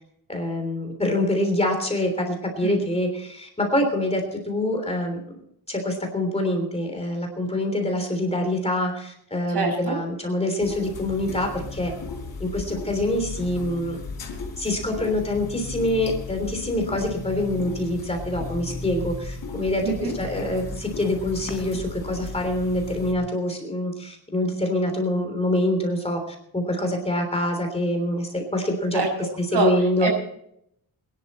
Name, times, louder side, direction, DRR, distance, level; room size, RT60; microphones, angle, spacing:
voice 1, 0.3-5.2 5.7-11.9 12.4-14.0 14.6-29.0 29.4-30.1, left 1 dB, 15° left, 3 dB, 3.3 m, -25 dB
voice 2, 9.5-10.0 19.8-20.1 28.9-29.1 29.5-29.7 30.0-30.1, right 4 dB, 80° right, 2 dB, 6.0 m, -24 dB
sound 1, 10.6-23.1, left 4 dB, 60° left, 3.6 m, -35 dB
22.5 x 11.0 x 4.3 m, 0.73 s
wide cardioid pair, 165°, 39 cm